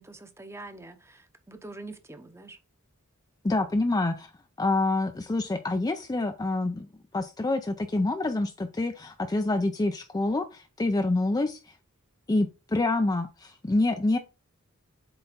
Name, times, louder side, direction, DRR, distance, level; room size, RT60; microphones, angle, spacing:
voice 1, 0.0-2.6, right 2 dB, 10° right, 0.8 m, -44 dB
voice 2, 3.4-4.3 4.6-6.9 7.1-11.6 12.3-14.2, left 2 dB, 15° left, 0.4 m, -27 dB
7.7 x 3.5 x 4.1 m
head